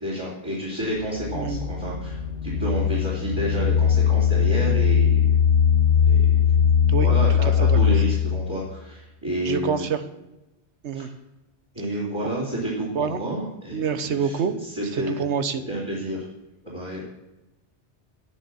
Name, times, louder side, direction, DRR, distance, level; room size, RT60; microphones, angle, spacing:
voice 1, 0.0-5.3 6.0-6.4 7.0-9.9 10.9-11.0 11.7-15.2 15.7-16.2 16.6-17.0, right 1 dB, 25° right, -5 dB, 3.3 m, -30 dB
sound 1, 0.8-8.6, left 8 dB, 85° left, 1.3 m, -20 dB
voice 2, 7.4-7.8 9.4-10.0 10.8-11.1 12.9-13.2 13.7-14.5 14.9-15.6, right 7 dB, 80° right, 10 dB, 1.2 m, -26 dB
10.0 x 9.8 x 6.3 m, 0.97 s
omnidirectional pair, 1.2 m